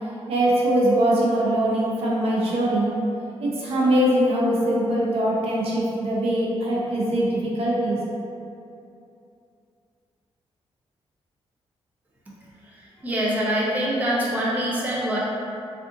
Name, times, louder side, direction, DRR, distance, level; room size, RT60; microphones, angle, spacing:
voice 1, 0.3-2.9 3.4-8.0, right 1 dB, 65° right, -5 dB, 0.6 m, -22 dB
voice 2, 13.0-15.2, equal, 15° right, -6 dB, 0.4 m, -24 dB
2.5 x 2.4 x 3.7 m, 2.7 s
wide cardioid pair, 145°, 11 cm